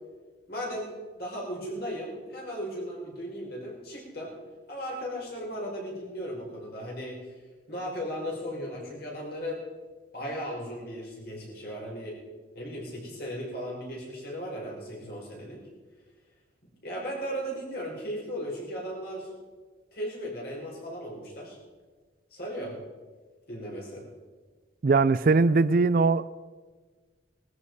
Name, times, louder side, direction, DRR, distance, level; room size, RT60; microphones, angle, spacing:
voice 1, 0.5-4.3 4.7-7.3 7.7-9.6 10.1-12.2 12.5-15.6 16.6-19.3 19.9-21.6 22.3-22.8 23.5-24.1, equal, 55° left, -2 dB, 5.0 m, -36 dB
voice 2, 24.8-26.3, right 3 dB, 50° right, 17 dB, 0.4 m, -21 dB
19.0 x 13.5 x 4.8 m, 1.4 s
head